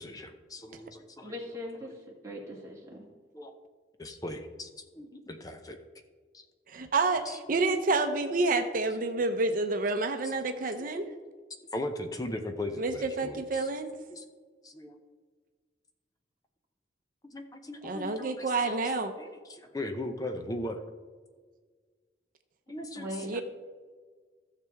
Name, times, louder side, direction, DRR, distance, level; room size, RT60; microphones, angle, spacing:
voice 1, 0.0-1.4 1.8-1.9 3.3-3.5 4.0-4.7 5.0-5.8 6.3-6.4 7.2-7.4 10.2-10.3 10.8-10.9 11.7-13.7 14.1-14.2 14.6-15.0 17.2-18.8 19.2-20.8 22.7-23.4, left 1 dB, 20° left, 6 dB, 0.7 m, -38 dB
voice 2, 1.2-1.9 2.2-3.0 23.0-23.3, equal, 20° right, -3 dB, 2.1 m, -39 dB
voice 3, 6.7-7.2 7.5-11.0 12.8-13.9 17.8-19.1 23.3-23.4, right 3 dB, 50° right, 6 dB, 0.7 m, -28 dB
15.0 x 6.8 x 3.5 m, 1.5 s
head